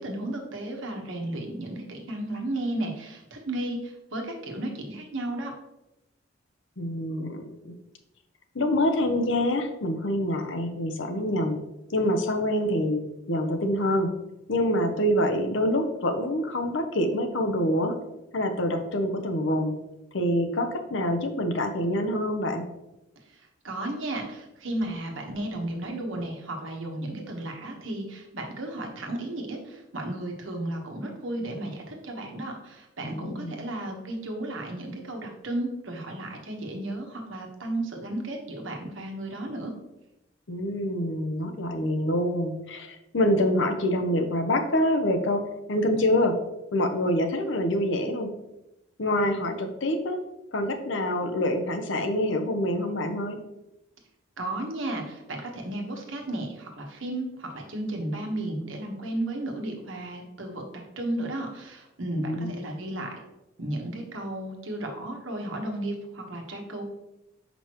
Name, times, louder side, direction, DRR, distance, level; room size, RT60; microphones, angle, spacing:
voice 1, 0.0-5.5 23.3-39.7 54.4-63.2 63.6-66.8, right 1 dB, 75° right, 1 dB, 1.3 m, -34 dB
voice 2, 6.8-7.7 8.5-11.6 11.9-13.0 13.3-14.1 14.5-17.9 18.3-19.7 20.1-22.6 33.0-33.6 40.5-45.4 45.7-46.4 46.7-48.3 49.0-50.2 50.5-53.4 62.1-62.5, left 1 dB, 65° left, 6 dB, 0.8 m, -26 dB
6.2 x 5.2 x 3.0 m, 0.92 s
head